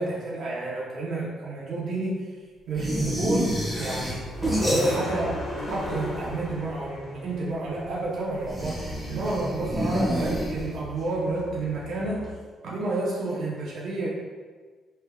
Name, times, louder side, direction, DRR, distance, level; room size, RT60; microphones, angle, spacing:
voice 1, 0.0-2.3 2.7-4.3 4.6-5.4 5.7-12.3 12.6-14.1, right 2 dB, 65° right, -5 dB, 0.7 m, -30 dB
sound 1, 2.8-5.3 5.6-6.4 8.4-10.9, equal, 5° left, 1.2 m, -28 dB
sound 2, 3.3-12.3, equal, 50° left, 1.2 m, -38 dB
3.4 x 3.3 x 2.2 m, 1.5 s
cardioid pair, 90°, 0 cm